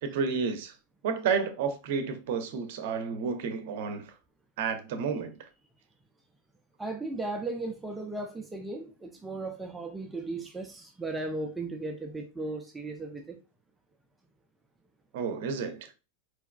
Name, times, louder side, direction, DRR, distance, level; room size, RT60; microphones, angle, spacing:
voice 1, 0.0-0.7 1.0-4.1 4.6-5.4 15.1-15.9, right 5 dB, 50° right, 0.8 m, -31 dB
voice 2, 6.8-13.4, right 2 dB, 10° right, 0.6 m, -36 dB
4.5 x 4.1 x 2.2 m
figure-of-eight pair, 90°, 0 cm